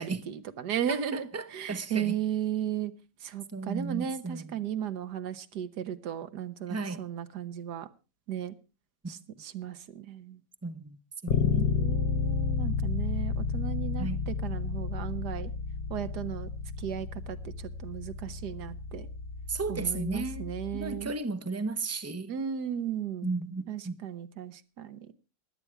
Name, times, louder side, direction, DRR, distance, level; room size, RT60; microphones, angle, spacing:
voice 1, 0.0-2.9 3.2-7.9 8.3-8.5 9.1-10.4 11.3-15.5 15.9-16.5 16.8-17.4 17.8-19.1 19.7-21.1 22.3-23.3 23.7-25.1, right 9 dB, 75° right, 1.6 m, -35 dB
voice 2, 0.9-2.2 3.5-4.4 6.7-7.0 10.6-11.0 11.2-11.7 14.0-14.2 19.5-22.3 23.2-23.9, right 3 dB, 15° right, 0.7 m, -34 dB
Bass guitar, 11.3-21.1, left 5 dB, 65° left, 1.3 m, -32 dB
16.5 x 11.5 x 4.7 m
omnidirectional pair, 1.8 m